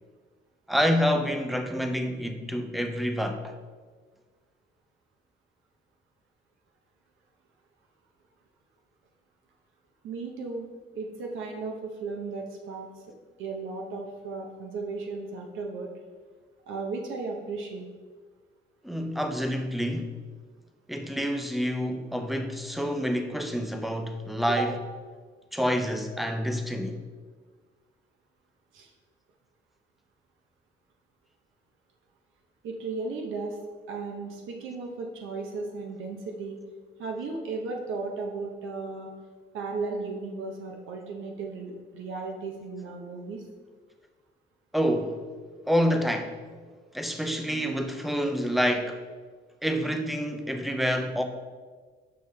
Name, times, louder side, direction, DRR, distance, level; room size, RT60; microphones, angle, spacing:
voice 1, 0.7-3.6 18.8-20.1 20.9-24.7 25.5-27.0 44.7-45.2 45.7-46.4 46.9-49.0 49.6-51.2, equal, ahead, 0.6 m, -27 dB
voice 2, 10.0-10.7 10.9-12.9 13.4-15.9 16.7-17.9 24.5-24.7 28.7-28.9 32.6-33.6 33.9-36.6 37.0-39.1 39.5-43.4, right 3 dB, 80° right, 0.7 m, -35 dB
6.8 x 5.2 x 3.2 m
cardioid pair, 90°, 20 cm